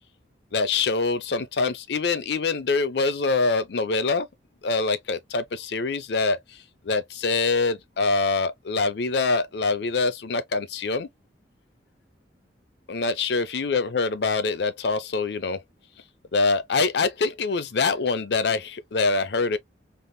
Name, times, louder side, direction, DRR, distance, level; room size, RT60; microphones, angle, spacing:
voice 1, 0.5-4.3 4.6-6.4 6.8-11.1 12.9-15.6 16.3-19.6, left 4 dB, 60° left, 0.5 m, -24 dB
3.4 x 2.1 x 2.6 m
head